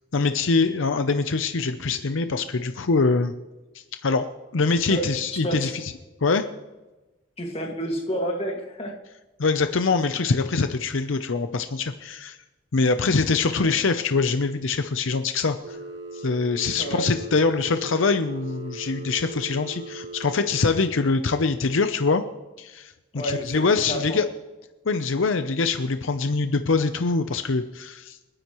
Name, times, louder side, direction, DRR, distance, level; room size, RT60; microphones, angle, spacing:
voice 1, 0.1-3.3 3.7-4.3 4.5-5.9 6.2-6.5 9.4-12.4 12.7-15.8 16.1-22.2 22.6-24.3 24.9-28.2, left 4 dB, 75° left, 9 dB, 0.6 m, -24 dB
voice 2, 4.9-5.7 7.4-9.0 16.8-17.0 23.1-24.2, equal, 30° left, 2 dB, 1.9 m, -30 dB
Telephone, 15.6-20.6, right 2 dB, 70° right, 1.5 m, -38 dB
29.5 x 10.0 x 3.1 m, 1.1 s
head